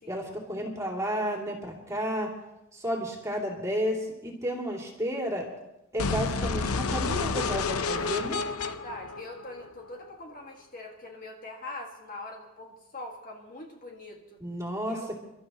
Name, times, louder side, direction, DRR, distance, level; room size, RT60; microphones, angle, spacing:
voice 1, 0.1-2.3 2.7-5.5 5.9-8.4 14.4-15.0, equal, 15° right, -1 dB, 2.8 m, -32 dB
sound 1, 6.0-10.0, left 4 dB, 85° left, 0.7 m, -30 dB
voice 2, 8.3-14.4 14.9-15.1, left 2 dB, 40° left, 0 dB, 1.9 m, -43 dB
29.5 x 12.5 x 3.0 m, 0.92 s
head